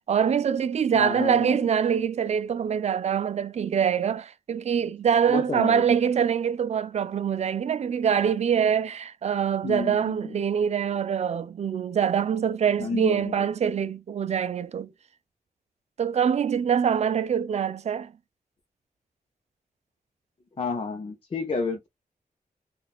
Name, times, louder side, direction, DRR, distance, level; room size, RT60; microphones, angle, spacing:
voice 1, 0.1-14.9 16.0-18.1, right 7 dB, 45° right, 0.4 m, -24 dB
voice 2, 0.9-1.7 5.3-5.8 9.6-10.4 12.8-13.5 20.6-21.9, left 4 dB, 35° left, 0.7 m, -30 dB
3.8 x 2.4 x 2.3 m
wide cardioid pair, 115°, 15 cm